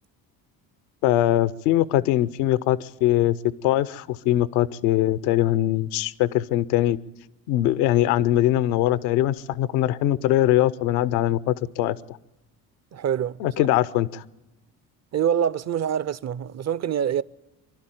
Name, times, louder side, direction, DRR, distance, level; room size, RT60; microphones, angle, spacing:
voice 1, 1.0-3.4 3.6-7.0 7.5-12.2 13.4-14.2, left 13 dB, 85° left, 0.7 m, -22 dB
voice 2, 12.9-13.4 15.1-17.2, right 9 dB, 40° right, 0.6 m, -25 dB
24.0 x 12.0 x 9.1 m
hypercardioid pair, 60°, 44 cm